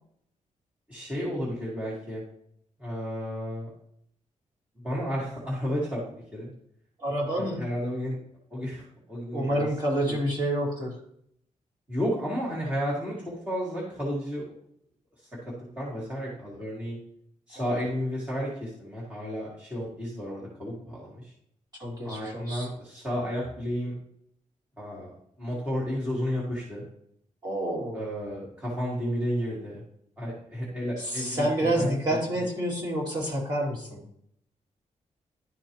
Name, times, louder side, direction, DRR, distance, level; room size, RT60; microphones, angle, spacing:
voice 1, 0.9-2.2 2.8-3.7 4.8-6.5 7.4-8.2 8.5-8.8 9.1-9.7 10.1-10.2 11.9-14.4 15.7-17.0 17.5-21.3 22.0-23.9 24.8-25.1 25.4-26.8 27.9-29.8 30.2-31.9, equal, 10° right, -7 dB, 1.8 m, -32 dB
voice 2, 7.0-7.6 9.3-11.0 17.5-17.8 21.8-22.7 27.4-28.0 31.0-34.0, right 1 dB, 30° right, -4 dB, 2.3 m, -28 dB
11.5 x 4.5 x 3.0 m, 0.70 s
wide cardioid pair, 175°, 13 cm